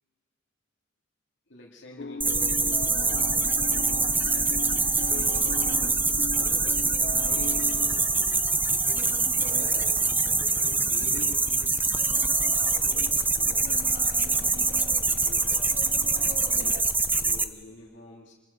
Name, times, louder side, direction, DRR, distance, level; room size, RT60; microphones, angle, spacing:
voice 1, 1.5-3.2 3.6-9.9 10.6-11.9 12.6-14.0 14.4-16.9 17.2-18.3, left 1 dB, 70° left, -4 dB, 2.5 m, -48 dB
sound 1, 2.0-8.0, left 3 dB, 50° left, 0.6 m, -38 dB
sound 2, 2.2-17.4, right 3 dB, 10° right, 0.6 m, -24 dB
sound 3, 2.3-16.8, right 2 dB, 45° right, 1.4 m, -44 dB
26.5 x 23.0 x 5.4 m, 1.4 s
head